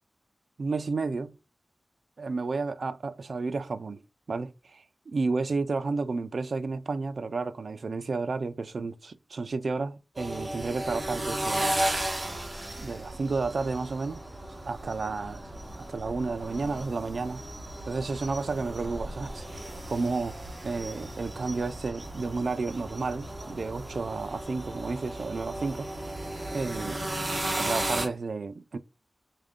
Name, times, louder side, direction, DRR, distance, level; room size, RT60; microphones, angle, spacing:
voice 1, 0.6-1.4 2.2-4.0 4.3-11.9 12.8-14.2 14.6-15.5 15.8-17.4 17.9-19.5 19.9-20.4 20.6-25.9 26.5-27.0 27.6-28.8, right 4 dB, 80° right, 0.3 m, -32 dB
sound 1, 10.2-28.1, right 1 dB, 35° right, 0.8 m, -35 dB
3.6 x 2.5 x 3.4 m
wide cardioid pair, 85°, 0 cm